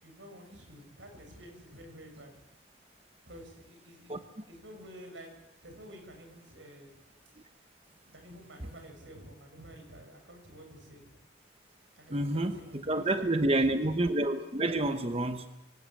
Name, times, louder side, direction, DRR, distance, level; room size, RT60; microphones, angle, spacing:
voice 1, 0.0-2.4 3.3-4.2 4.5-5.3 5.6-7.0 8.1-11.1 12.0-13.8, equal, 85° right, 4 dB, 7.1 m, -50 dB
voice 2, 4.1-4.4 7.4-7.5 12.1-15.5, right 1 dB, 30° right, 8 dB, 1.0 m, -29 dB
25.0 x 16.5 x 8.8 m, 0.89 s
head